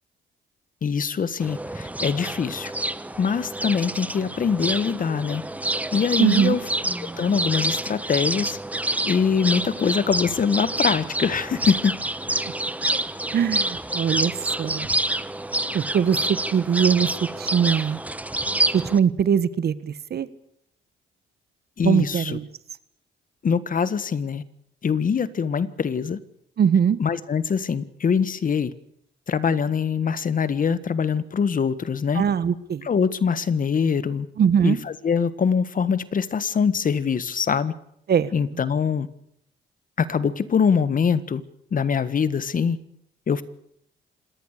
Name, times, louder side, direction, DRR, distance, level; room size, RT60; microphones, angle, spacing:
voice 1, 0.8-2.7 3.2-5.4 5.9-6.6 7.0-8.6 9.0-12.0 12.3-12.4 21.8-22.4 23.4-24.4 24.8-26.2 27.0-28.7 29.3-32.2 32.8-34.3 34.6-37.7 38.3-39.1 40.0-41.4 41.7-42.8 43.3-43.4, left 6 dB, 45° left, 15 dB, 1.5 m, -23 dB
sound 1, 1.4-19.0, right 1 dB, 5° right, 1.0 m, -28 dB
voice 2, 6.2-6.6 12.4-12.5 13.3-14.3 14.6-14.9 15.7-17.1 17.4-18.0 18.7-20.3 21.8-22.5 26.6-27.0 32.1-32.9 34.4-34.8 38.1-38.3, right 7 dB, 55° right, 15 dB, 1.4 m, -21 dB
26.0 x 19.0 x 6.7 m, 0.72 s
cardioid pair, 90°, 20 cm